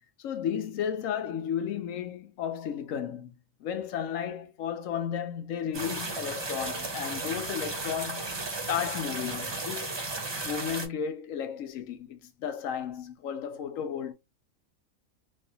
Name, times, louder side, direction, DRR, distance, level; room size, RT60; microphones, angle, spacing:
voice 1, 0.2-3.3 3.6-8.3 8.7-10.0 10.4-14.1, left 8 dB, 70° left, 1.0 m, -33 dB
sound 1, 5.7-10.9, right 2 dB, 25° right, 0.6 m, -34 dB
3.2 x 2.7 x 2.7 m
omnidirectional pair, 1.5 m